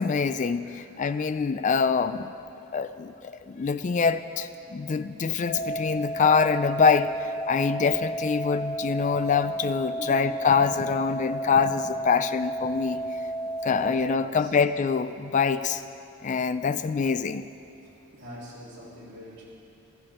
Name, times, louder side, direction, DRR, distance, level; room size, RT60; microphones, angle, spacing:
voice 1, 0.0-2.3 2.7-7.1 7.5-13.0 13.6-15.8 16.2-17.4, left 5 dB, 35° left, 12 dB, 0.3 m, -25 dB
sound 1, 5.5-14.0, right 1 dB, 70° left, 3.3 m, -32 dB
voice 2, 10.0-10.4 13.6-14.6 17.8-19.4, right 1 dB, 50° right, -6 dB, 3.2 m, -45 dB
15.0 x 13.5 x 4.3 m, 3.0 s
head